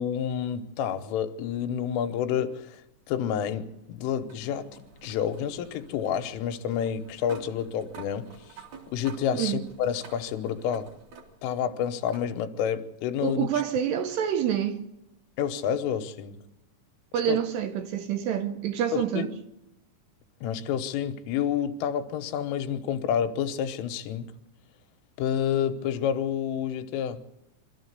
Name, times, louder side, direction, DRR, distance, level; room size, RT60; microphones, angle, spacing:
voice 1, 0.0-2.8 3.1-4.7 5.0-8.3 8.9-10.9 11.4-13.5 15.4-16.4 17.3-17.4 18.9-19.3 20.4-24.3 25.2-27.2, left 8 dB, 90° left, 3.7 m, -29 dB
sound 1, 2.7-11.6 12.1-12.3 13.6-13.7 16.6-16.7, right 6 dB, 45° right, 3.4 m, -50 dB
voice 2, 13.2-14.8 17.1-19.3, right 9 dB, 75° right, 2.7 m, -27 dB
24.5 x 13.5 x 8.1 m
omnidirectional pair, 5.7 m